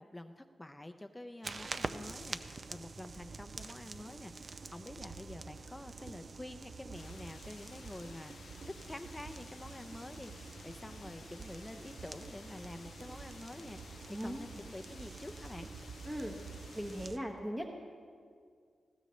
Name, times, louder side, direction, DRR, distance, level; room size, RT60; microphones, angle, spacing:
voice 1, 0.0-15.7, left 1 dB, 10° left, 8 dB, 0.5 m, -48 dB
sound 1, 1.4-17.2, right 4 dB, 45° right, 0.5 m, -47 dB
sound 2, 6.9-17.1, left 5 dB, 75° left, 0.6 m, -55 dB
voice 2, 14.1-14.4 16.0-16.4 16.7-17.7, equal, 15° right, 0 dB, 1.0 m, -39 dB
19.5 x 16.0 x 3.1 m, 2.1 s
wide cardioid pair, 120°, 0 cm